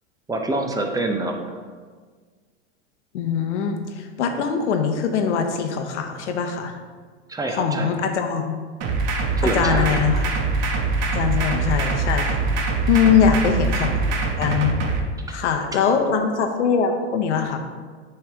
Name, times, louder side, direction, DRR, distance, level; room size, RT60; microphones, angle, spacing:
voice 1, 0.3-1.6 7.3-8.0 9.4-10.0 13.0-13.1 15.3-15.4, right 2 dB, 10° right, 3 dB, 0.5 m, -26 dB
voice 2, 3.1-6.7 7.5-8.6 9.4-10.2 11.1-12.4 12.9-14.0 14.4-14.7 15.3-17.6, left 6 dB, 80° left, 4 dB, 1.0 m, -22 dB
sound 1, 8.8-15.0, right 3 dB, 50° right, 1.1 m, -23 dB
9.4 x 3.4 x 3.4 m, 1.5 s
hypercardioid pair, 115°, 35 cm